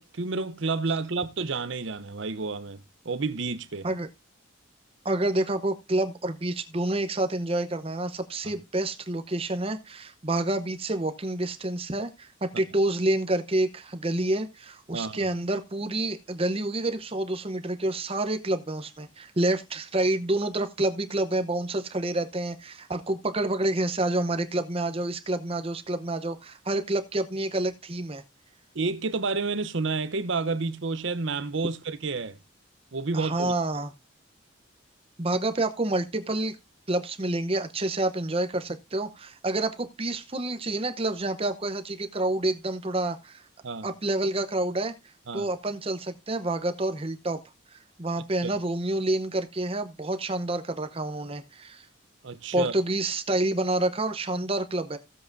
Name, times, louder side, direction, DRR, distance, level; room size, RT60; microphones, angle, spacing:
voice 1, 0.0-3.9 8.4-8.5 14.9-15.3 28.7-32.4 32.9-33.5 43.6-43.9 45.3-45.5 48.2-48.5 52.2-52.7, right 4 dB, 65° right, 0.7 m, -30 dB
voice 2, 5.0-28.2 33.1-33.9 35.2-36.6 36.9-43.4 43.8-44.9 45.3-47.4 47.7-51.9 52.5-55.0, right 2 dB, 30° right, 0.8 m, -28 dB
16.0 x 7.6 x 2.6 m
head